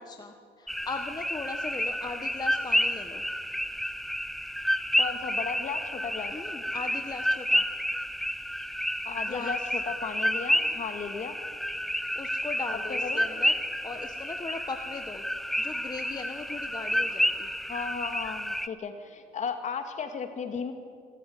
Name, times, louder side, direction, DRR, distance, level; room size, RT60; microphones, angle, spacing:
voice 1, 0.0-3.3 6.3-7.6 9.2-9.7 12.1-13.5 13.8-15.2 15.6-17.5, left 4 dB, 25° left, 5 dB, 1.4 m, -38 dB
sound 1, 0.7-18.7, equal, ahead, 0.7 m, -30 dB
voice 2, 5.0-6.3 9.0-11.4 12.9-13.2 17.7-20.7, left 6 dB, 45° left, 7 dB, 2.4 m, -35 dB
25.5 x 13.5 x 9.6 m, 2.2 s
cardioid pair, 110°, 17 cm